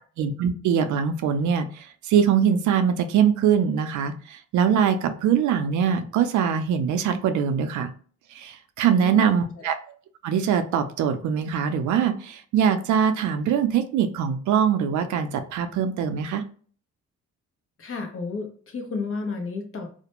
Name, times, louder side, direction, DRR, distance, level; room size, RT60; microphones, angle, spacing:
voice 1, 0.2-7.9 8.3-9.8 10.2-16.4, right 7 dB, 75° right, 8 dB, 0.5 m, -23 dB
voice 2, 9.0-9.7 17.8-19.9, left 4 dB, 45° left, 3 dB, 0.8 m, -32 dB
2.4 x 2.1 x 2.9 m, 0.43 s
cardioid pair, 90°, 30 cm